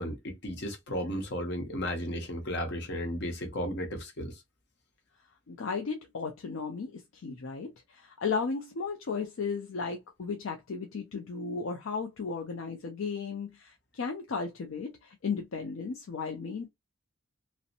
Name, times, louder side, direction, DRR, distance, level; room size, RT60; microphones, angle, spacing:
voice 1, 0.0-4.4, equal, 55° left, 0.8 m, -34 dB
voice 2, 5.5-16.7, left 5 dB, 70° left, 0.4 m, -35 dB
2.7 x 2.1 x 2.5 m
head